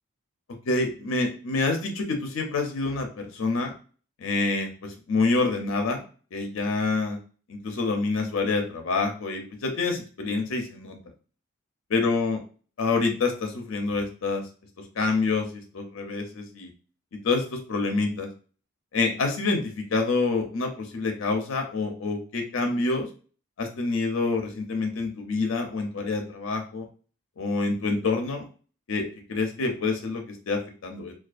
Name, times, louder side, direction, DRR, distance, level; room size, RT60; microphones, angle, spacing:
voice 1, 0.7-3.7 4.2-6.0 6.3-7.2 7.5-11.0 11.9-12.4 12.8-14.4 15.0-16.7 17.2-18.3 18.9-23.1 23.6-26.9 27.4-28.5 28.9-31.1, left 3 dB, 70° left, 4 dB, 0.5 m, -27 dB
2.4 x 2.3 x 2.4 m, 0.39 s
head